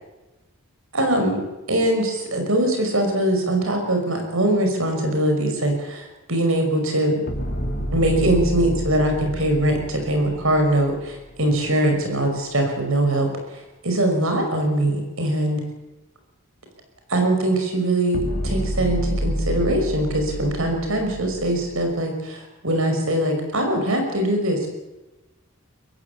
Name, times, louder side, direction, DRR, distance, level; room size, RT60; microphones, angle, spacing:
voice 1, 0.9-1.4 1.7-7.1 7.9-13.3 13.8-15.6 17.1-24.7, right 1 dB, 75° right, 4 dB, 5.7 m, -22 dB
sound 1, 7.3-11.6 18.1-21.9, equal, 45° left, 3.5 m, -29 dB
23.5 x 15.0 x 8.6 m, 1.0 s
head